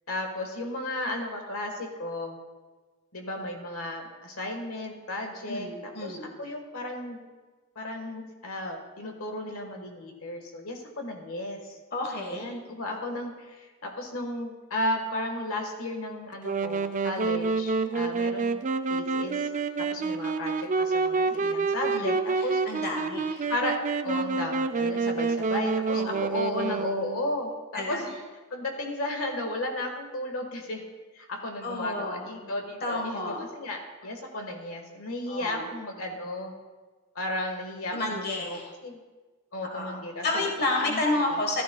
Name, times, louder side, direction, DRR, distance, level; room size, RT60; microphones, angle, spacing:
voice 1, 0.1-2.4 3.1-7.2 7.7-11.8 12.3-18.6 18.9-19.5 19.8-22.8 23.5-23.8 24.0-28.1 28.5-30.8 31.1-36.5 37.1-39.0 39.5-40.5 40.8-41.0, left 1 dB, 70° left, 3 dB, 1.5 m, -34 dB
voice 2, 5.5-6.3 11.9-12.5 21.9-23.4 25.9-26.2 26.7-26.8 27.7-28.0 31.6-32.5 32.8-33.4 35.3-35.7 37.9-38.7 39.7-41.6, left 2 dB, 45° left, 1 dB, 1.4 m, -31 dB
Wind instrument woodwind instrument, 16.4-27.3, right 4 dB, 35° right, 0.4 m, -28 dB
14.5 x 13.0 x 2.3 m, 1.3 s
head